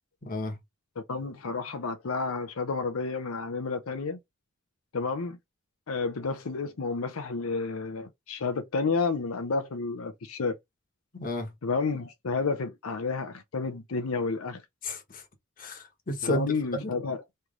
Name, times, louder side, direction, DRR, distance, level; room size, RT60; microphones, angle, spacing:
voice 1, 0.2-0.6 11.1-11.5 14.8-15.2 15.6-16.9, left 1 dB, 40° left, 1.2 m, -32 dB
voice 2, 1.1-4.2 4.9-5.4 5.9-10.6 11.6-14.6 16.2-17.2, left 4 dB, 85° left, 0.7 m, -30 dB
3.3 x 3.1 x 3.7 m
head